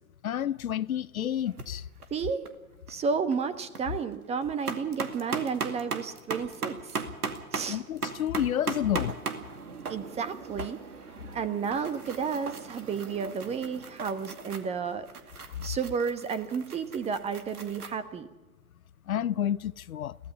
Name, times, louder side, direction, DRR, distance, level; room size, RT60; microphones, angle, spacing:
voice 1, 0.2-1.9 7.7-9.2 15.6-15.7 19.1-20.2, left 10 dB, 65° left, 0.7 m, -30 dB
sound 1, 1.5-1.7 2.0-2.6 2.9-3.0 3.3-3.8 4.2-18.0, right 5 dB, 75° right, 2.4 m, -38 dB
voice 2, 2.1-2.4 2.9-7.0 7.5-7.8 9.9-10.8 11.3-15.1 15.4-18.3, right 6 dB, 15° right, 1.1 m, -32 dB
23.0 x 17.0 x 7.1 m
figure-of-eight pair, 115°, 45 cm